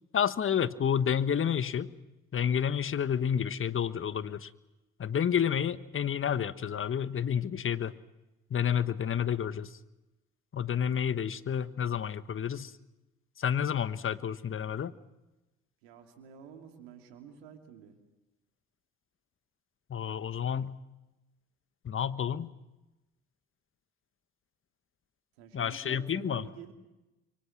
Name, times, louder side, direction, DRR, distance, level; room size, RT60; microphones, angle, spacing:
voice 1, 0.1-1.9 2.3-4.5 5.0-8.0 8.5-9.8 10.5-12.7 13.4-14.9 19.9-20.8 21.8-22.5 25.5-26.5, left 8 dB, 45° left, 14 dB, 1.3 m, -30 dB
voice 2, 15.8-18.0 25.4-26.7, right 8 dB, 85° right, 5 dB, 2.9 m, -49 dB
27.0 x 24.0 x 6.0 m, 1.0 s
hypercardioid pair, 55°, 30 cm